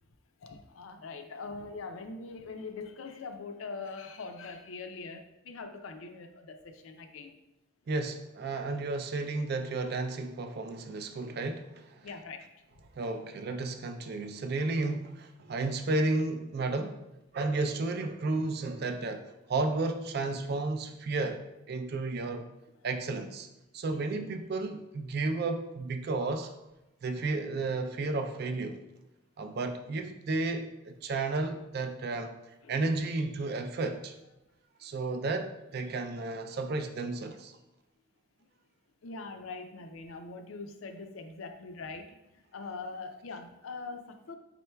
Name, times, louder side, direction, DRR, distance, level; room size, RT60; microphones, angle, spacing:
voice 1, 0.4-7.4 12.0-12.4 24.2-24.3 32.6-32.7 38.4-38.5 39.0-42.0 42.5-44.4, left 4 dB, 75° left, 6 dB, 0.4 m, -42 dB
voice 2, 7.9-11.8 13.0-17.0 17.3-19.2 19.5-21.4 21.7-22.4 22.8-23.5 23.7-26.5 27.0-28.8 29.4-32.3 32.7-34.1 34.8-37.6, right 3 dB, 50° right, 6 dB, 0.3 m, -32 dB
4.3 x 3.7 x 2.2 m, 0.93 s
head